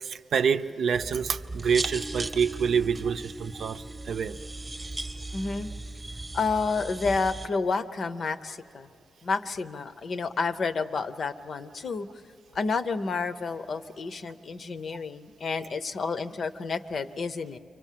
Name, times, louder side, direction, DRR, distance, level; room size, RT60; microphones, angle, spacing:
voice 1, 0.0-4.4, right 6 dB, 65° right, 9 dB, 0.6 m, -27 dB
sound 1, 0.9-7.5, right 2 dB, 15° right, 1.1 m, -37 dB
voice 2, 5.3-5.7 6.3-8.9 9.2-12.1 12.5-17.6, left 4 dB, 50° left, 11 dB, 0.8 m, -30 dB
29.5 x 25.0 x 7.5 m, 2.6 s
wide cardioid pair, 165°, 0 cm